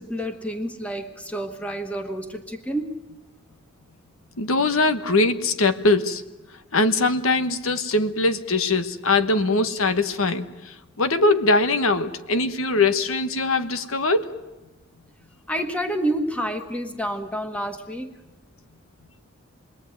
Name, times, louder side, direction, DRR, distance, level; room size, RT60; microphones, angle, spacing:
voice 1, 0.0-3.0 15.5-18.1, right 1 dB, 5° left, 7 dB, 1.5 m, -29 dB
voice 2, 4.4-6.2 6.7-14.3, left 2 dB, 90° left, 11 dB, 1.3 m, -22 dB
27.5 x 21.5 x 9.2 m, 1.1 s
head